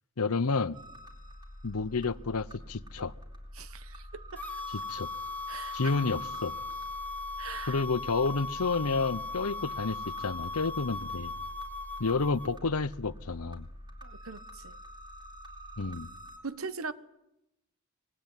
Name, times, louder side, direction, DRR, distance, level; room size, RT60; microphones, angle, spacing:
voice 1, 0.2-0.8 1.6-3.1 4.9-5.1 5.7-6.5 7.7-11.3 12.0-13.7 15.8-16.1, left 4 dB, 85° left, 0.9 m, -30 dB
sound 1, 0.7-16.4, equal, 20° right, 3.8 m, -47 dB
voice 2, 3.5-4.4 5.5-6.0 7.4-7.8 14.0-14.8 16.4-16.9, right 5 dB, 70° right, 1.2 m, -41 dB
sound 2, 4.4-12.5, left 3 dB, 10° left, 1.7 m, -38 dB
25.0 x 21.0 x 9.1 m
head